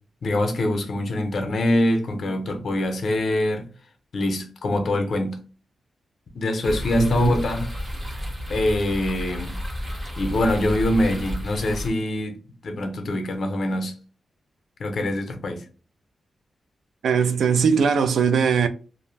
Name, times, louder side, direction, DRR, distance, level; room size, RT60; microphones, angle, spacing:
voice 1, 0.2-3.7 4.1-5.4 6.3-7.7 8.5-9.5 10.2-12.4 12.6-14.0 14.8-15.6, left 1 dB, 55° left, 0.5 m, -24 dB
sound 1, 6.6-11.9, equal, 15° right, 0.7 m, -31 dB
voice 2, 7.0-7.3 17.0-18.7, right 6 dB, 80° right, 0.3 m, -20 dB
2.5 x 2.1 x 3.1 m
wide cardioid pair, 155°, 0 cm